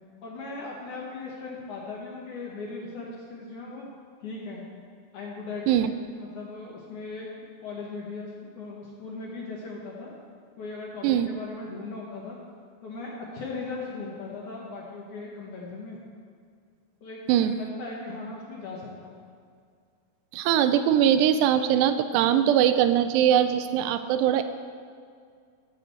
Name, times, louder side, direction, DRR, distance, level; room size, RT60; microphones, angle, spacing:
voice 1, 0.2-3.9 4.2-4.7 5.1-7.3 7.6-10.1 10.6-12.4 12.8-16.0 17.0-19.2, left 3 dB, 65° left, -3 dB, 2.1 m, -38 dB
voice 2, 20.3-24.4, right 10 dB, 85° right, 10 dB, 2.7 m, -21 dB
13.5 x 5.2 x 7.6 m, 2.2 s
omnidirectional pair, 4.8 m